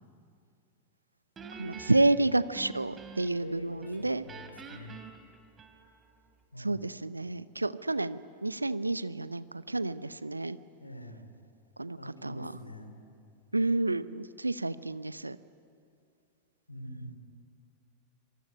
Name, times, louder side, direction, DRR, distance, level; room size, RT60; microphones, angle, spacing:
Guitar, 1.4-3.5 3.8-6.1, right 6 dB, 20° right, 3.2 m, -47 dB
voice 1, 1.6-4.2 6.6-10.6 11.8-12.5 13.5-15.4, right 2 dB, 85° right, 16 dB, 0.8 m, -30 dB
voice 2, 3.4-5.0 6.5-6.9 10.8-11.2 12.0-12.9 16.7-17.2, left 1 dB, 85° left, 7 dB, 3.3 m, -45 dB
26.0 x 23.0 x 9.6 m, 2.5 s
figure-of-eight pair, 90°, 0 cm